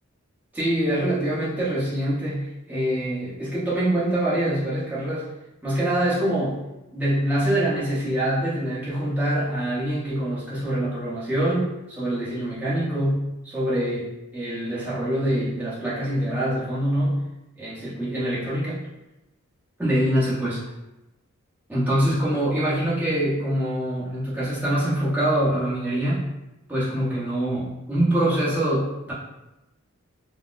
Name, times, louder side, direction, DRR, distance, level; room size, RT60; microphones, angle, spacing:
voice 1, 0.5-5.3 5.6-6.6 6.9-17.2 17.6-18.8 19.8-20.6 21.7-26.3 26.7-29.1, right 1 dB, 10° right, -9 dB, 0.8 m, -24 dB
3.8 x 2.1 x 2.4 m, 0.97 s
head